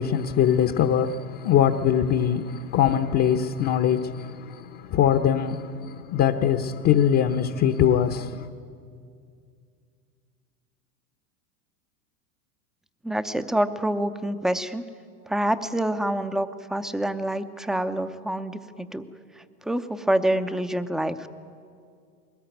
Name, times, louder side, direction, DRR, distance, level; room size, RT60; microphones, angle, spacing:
voice 1, 0.0-8.5, left 9 dB, 30° left, 0.9 m, -22 dB
voice 2, 13.0-14.8 15.3-19.0 19.7-21.2, right 1 dB, ahead, 0.7 m, -26 dB
21.0 x 19.0 x 9.2 m
hypercardioid pair, 105°, 47 cm